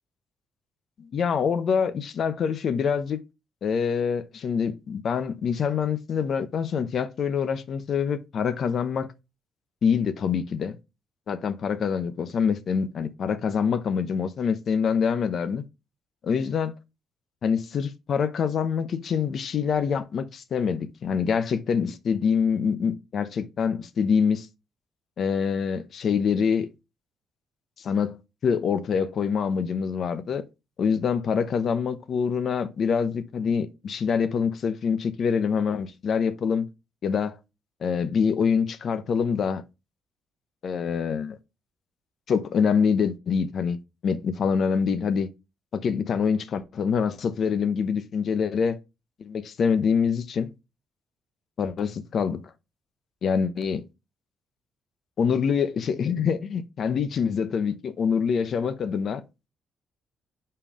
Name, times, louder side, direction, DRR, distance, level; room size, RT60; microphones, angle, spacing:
voice 1, 1.0-3.2 3.6-9.1 9.8-10.8 11.3-15.6 16.2-16.7 17.4-24.5 25.2-26.7 27.8-28.2 28.4-30.4 30.8-36.7 37.0-37.4 37.8-39.6 40.6-41.4 42.3-43.8 44.0-45.3 45.7-48.8 49.2-50.5 51.6-52.4 53.2-53.8 55.2-59.2, left 6 dB, 55° left, 0.9 m, -25 dB
5.5 x 4.5 x 4.9 m
cardioid pair, 90°, 0 cm